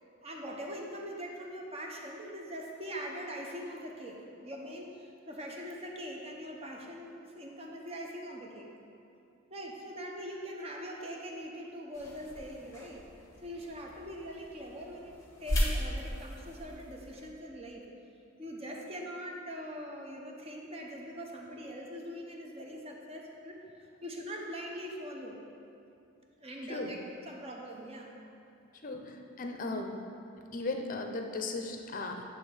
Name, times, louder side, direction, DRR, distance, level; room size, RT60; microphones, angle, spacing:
voice 1, 0.2-8.7 9.5-13.0 13.3-15.1 15.4-17.9 18.4-23.6 24.0-25.4 26.4-28.1, equal, 30° right, 0 dB, 0.8 m, -42 dB
sound 1, 11.9-17.3, equal, 15° left, 1.2 m, -37 dB
voice 2, 28.8-30.0 30.5-32.2, left 2 dB, 40° left, 4 dB, 0.6 m, -36 dB
9.3 x 3.4 x 6.3 m, 2.6 s
head